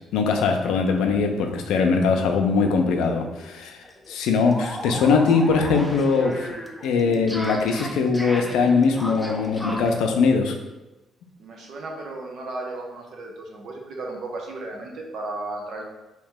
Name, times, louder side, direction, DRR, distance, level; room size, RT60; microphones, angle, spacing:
voice 1, 0.1-3.8 4.1-6.6 6.8-10.6, left 4 dB, 90° left, 4 dB, 0.4 m, -21 dB
sound 1, 3.0-3.1 3.4-3.5 3.8-10.0, equal, 5° left, 0.5 m, -35 dB
voice 2, 11.4-15.8, right 2 dB, 70° right, 0 dB, 0.8 m, -35 dB
3.1 x 2.8 x 3.6 m, 1.0 s
cardioid pair, 90°, 0 cm